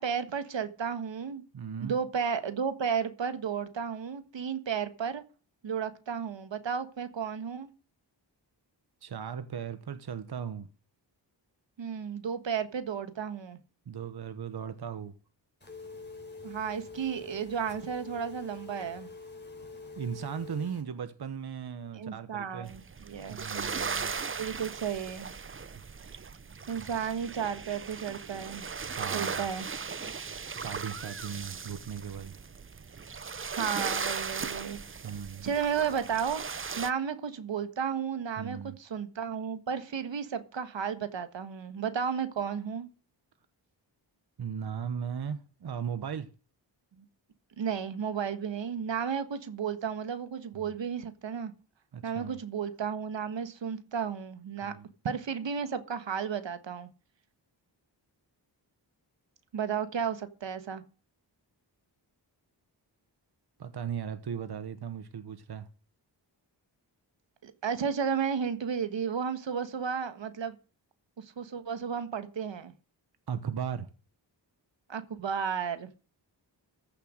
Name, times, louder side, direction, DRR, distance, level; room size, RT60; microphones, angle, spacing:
voice 1, 0.0-1.4 1.8-5.2 5.6-7.7 11.8-13.6 16.4-19.1 21.9-23.4 24.4-25.3 26.7-28.6 29.1-29.7 33.6-34.8 35.4-42.9 47.0-47.1 47.6-51.5 52.0-54.7 55.0-56.9 59.5-60.8 67.4-70.5 71.2-72.7 74.9-76.0, right 7 dB, 80° right, 1.5 m, -33 dB
voice 2, 1.5-2.0 9.0-10.7 13.9-15.1 20.0-22.7 23.3-24.1 28.9-29.5 30.6-32.3 35.0-35.5 38.4-38.8 44.4-46.3 50.5-50.7 51.9-52.4 54.6-54.9 63.6-65.7 73.3-73.9, right 7 dB, 60° right, 1.1 m, -37 dB
Telephone, 15.6-20.8, left 3 dB, 25° left, 4.0 m, -45 dB
sound 1, 22.7-36.9, right 5 dB, 30° right, 0.7 m, -37 dB
14.5 x 6.8 x 6.5 m
wide cardioid pair, 90°, 44 cm